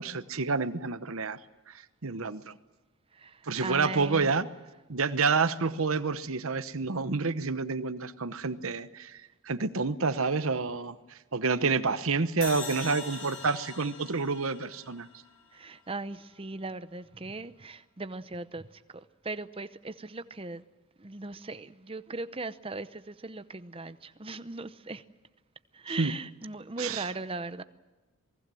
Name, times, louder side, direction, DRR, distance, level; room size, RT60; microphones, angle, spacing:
voice 1, 0.0-1.4 1.7-2.6 3.4-4.5 4.9-15.1 26.0-26.1 26.8-27.0, right 4 dB, 70° right, 13 dB, 1.0 m, -29 dB
voice 2, 3.1-4.3 15.5-20.6 21.0-25.0 25.7-27.6, right 3 dB, 25° right, 13 dB, 0.7 m, -39 dB
sound 1, 12.4-15.6, left 4 dB, 90° left, 7.0 m, -42 dB
27.5 x 20.0 x 7.7 m, 1.2 s
head